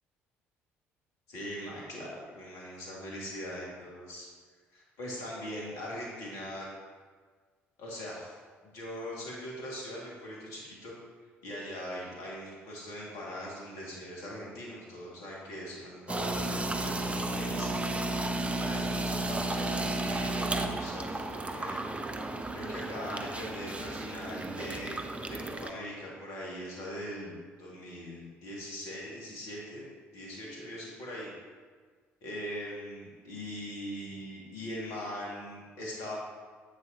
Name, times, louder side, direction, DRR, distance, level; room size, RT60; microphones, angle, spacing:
voice 1, 1.3-4.3 4.7-6.7 7.8-8.4 8.6-11.0 11.4-17.8 18.5-21.8 22.5-29.8 30.1-31.3 32.2-36.2, equal, 60° left, -4 dB, 2.1 m, -41 dB
sound 1, 16.1-25.7, right 2 dB, 20° right, 0.6 m, -33 dB
8.1 x 7.3 x 2.8 m, 1.5 s
figure-of-eight pair, 50°, 7 cm